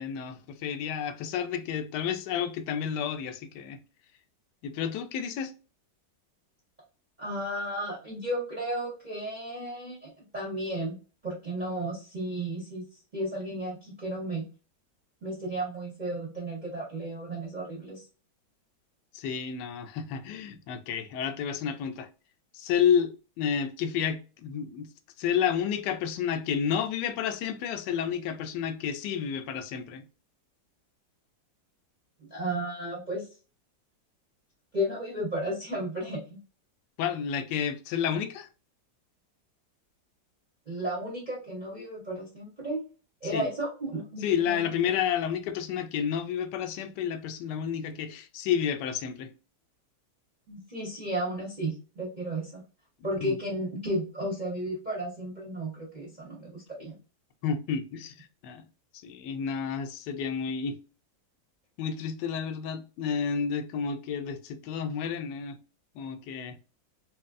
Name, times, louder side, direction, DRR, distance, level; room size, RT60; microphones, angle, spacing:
voice 1, 0.0-3.8 4.6-5.5 19.1-22.1 22.5-24.9 25.2-30.0 37.0-38.5 43.2-43.5 44.2-49.3 53.2-53.4 57.4-58.7 59.0-60.8 61.8-65.6 65.9-66.6, left 7 dB, 75° left, 1.1 m, -30 dB
voice 2, 7.2-11.0 11.2-12.8 13.1-14.4 15.2-18.0 32.3-33.3 34.7-36.4 40.7-42.8 43.2-44.7 50.5-52.6 53.0-56.9, right 1 dB, 35° right, 0.7 m, -33 dB
3.1 x 2.6 x 2.4 m
omnidirectional pair, 2.0 m